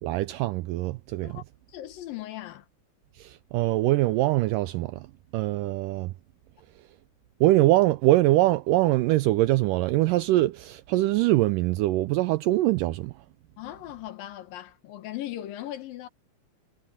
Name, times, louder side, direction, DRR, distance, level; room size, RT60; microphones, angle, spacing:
voice 1, 0.0-1.4 3.2-5.1 5.3-6.1 7.4-13.1, right 17 dB, 80° right, 1.9 m, -23 dB
voice 2, 1.7-2.7 13.6-16.1, left 13 dB, 70° left, 2.8 m, -38 dB
omnidirectional pair, 4.3 m